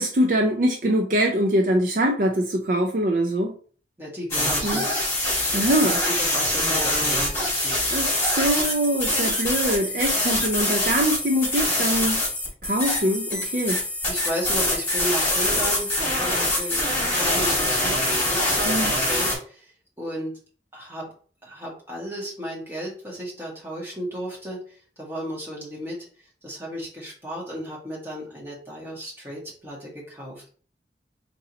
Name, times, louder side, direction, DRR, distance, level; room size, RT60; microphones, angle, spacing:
voice 1, 0.0-3.5 4.6-4.8 5.5-6.0 7.9-12.2 12.6-13.8 18.6-18.9, right 1 dB, 50° right, 2 dB, 0.4 m, -23 dB
voice 2, 4.0-5.0 5.5-7.9 14.1-20.3 20.7-21.1 21.4-26.0 26.4-30.5, equal, 15° right, -4 dB, 1.6 m, -34 dB
sound 1, 4.3-19.4, left 1 dB, 15° left, 2.3 m, -24 dB
3.9 x 3.0 x 3.9 m, 0.43 s
head